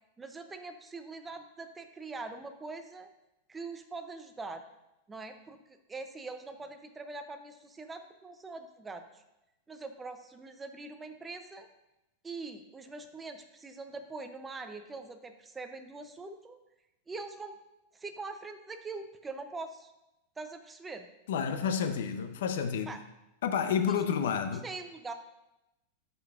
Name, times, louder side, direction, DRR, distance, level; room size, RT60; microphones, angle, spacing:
voice 1, 0.2-3.1 3.5-4.6 5.1-5.6 5.9-9.2 9.7-11.7 12.2-16.6 17.1-17.6 17.9-19.9 20.4-21.1 22.9-23.0 23.9-24.0 24.6-25.1, right 3 dB, 10° right, 0.4 m, -43 dB
voice 2, 21.3-23.0 23.4-24.6, left 7 dB, 75° left, 0.6 m, -30 dB
12.0 x 5.2 x 2.4 m
supercardioid pair, 170°, 0 cm